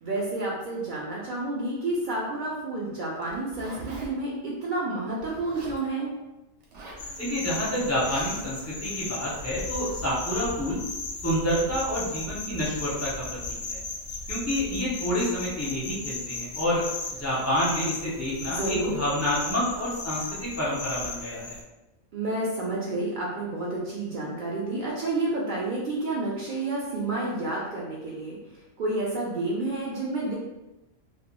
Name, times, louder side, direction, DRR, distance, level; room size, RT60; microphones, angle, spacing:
voice 1, 0.0-6.1 18.5-18.9 22.1-28.4 28.8-30.3, right 2 dB, 85° right, -5 dB, 0.4 m, -30 dB
Zipper (clothing), 3.2-4.1 5.2-5.8 6.6-7.1 7.9-8.3, right 3 dB, 65° right, 0.9 m, -42 dB
sound 1, 7.0-21.6, left 3 dB, 65° left, 0.6 m, -36 dB
voice 2, 7.2-10.8 11.2-13.8 14.3-16.8 17.2-21.6, equal, 20° left, -8 dB, 0.4 m, -28 dB
2.4 x 2.2 x 2.8 m, 0.98 s
omnidirectional pair, 1.4 m